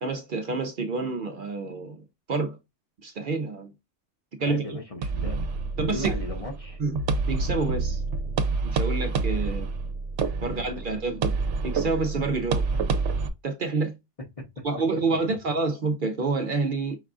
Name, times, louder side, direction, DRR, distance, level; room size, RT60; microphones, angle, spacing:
voice 1, 0.0-2.6 3.0-3.7 4.3-4.8 5.2-5.4 5.8-6.1 6.8-8.0 8.6-9.7 10.4-11.4 11.6-12.7 13.4-13.9 14.6-17.0, right 3 dB, 55° right, 0.7 m, -28 dB
voice 2, 4.4-5.4 5.9-6.8 14.4-14.7, left 1 dB, 35° left, 0.7 m, -36 dB
sound 1, 5.0-13.3, right 4 dB, 80° right, 1.0 m, -28 dB
5.3 x 3.4 x 2.5 m
omnidirectional pair, 1.2 m